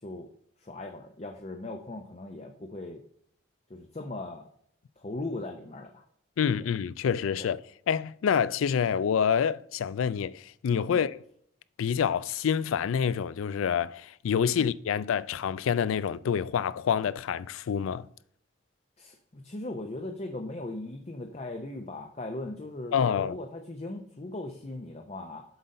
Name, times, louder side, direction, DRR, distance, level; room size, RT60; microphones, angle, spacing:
voice 1, 0.6-3.0 3.7-4.5 5.0-6.0 6.6-6.7 7.4-7.5 10.9-11.0 19.0-25.4, left 2 dB, 30° left, 0.6 m, -38 dB
voice 2, 6.4-7.6 7.9-11.2 11.8-18.1 22.9-23.4, left 7 dB, 85° left, 0.3 m, -27 dB
8.0 x 3.9 x 5.2 m
head